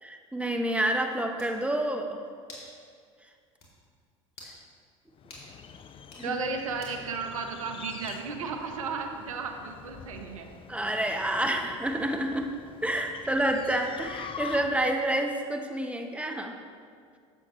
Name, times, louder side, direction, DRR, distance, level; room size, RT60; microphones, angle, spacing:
voice 1, 0.0-2.2 6.2-6.4 10.7-12.5 12.8-16.5, right 1 dB, 5° right, 4 dB, 0.9 m, -28 dB
sound 1, 1.4-1.6 2.5-2.7 3.1-3.2 3.6-3.7 4.3-4.6 5.3-5.5 6.0-6.3 6.8-7.0 8.1-8.4, left 2 dB, 60° left, 2.6 m, -48 dB
sound 2, 5.2-15.0, left 7 dB, 30° left, 0.5 m, -45 dB
voice 2, 6.2-10.5, right 4 dB, 80° right, 4 dB, 0.8 m, -34 dB
12.0 x 7.6 x 3.1 m, 2.1 s
hypercardioid pair, 75°, 17 cm